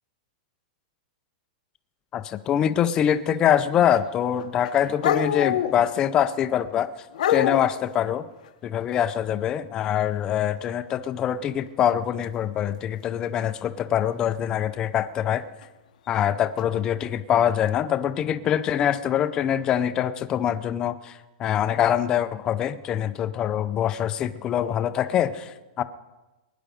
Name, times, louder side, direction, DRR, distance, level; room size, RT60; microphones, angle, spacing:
voice 1, 2.1-6.9 7.3-8.3 8.6-15.4 16.1-25.8, left 10 dB, 15° left, 12 dB, 0.5 m, -24 dB
sound 1, 3.7-4.1 4.4-6.2 7.1-7.7 11.9-12.2 13.4-13.5 15.6-15.7 16.6-16.8, left 9 dB, 65° left, 0.8 m, -26 dB
21.5 x 10.5 x 5.0 m, 1.1 s
supercardioid pair, 180°, 4 cm